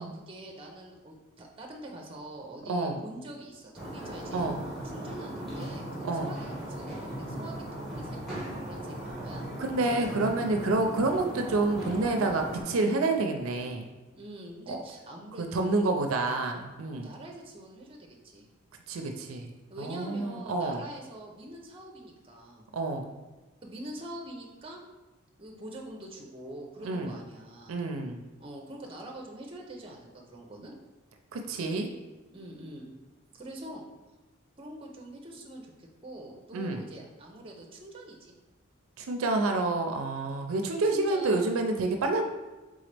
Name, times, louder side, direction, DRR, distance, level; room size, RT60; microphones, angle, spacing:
voice 1, 0.0-4.5 4.8-9.5 14.1-16.2 17.0-18.5 19.7-22.7 23.6-24.8 25.4-27.8 28.4-30.7 32.3-32.9 33.3-33.8 34.6-38.3 40.7-41.4, right 1 dB, 25° right, 1 dB, 0.6 m, -44 dB
voice 2, 2.7-3.0 4.3-4.6 6.0-6.3 9.6-13.9 14.7-14.8 15.4-17.1 18.9-19.5 19.8-20.8 22.7-23.1 26.8-27.1 27.7-28.2 31.3-31.9 36.5-36.8 39.0-42.2, right 2 dB, 85° right, 4 dB, 0.5 m, -28 dB
sound 1, 3.7-12.6, right 1 dB, ahead, 1.0 m, -38 dB
3.9 x 3.7 x 3.3 m, 1.2 s
head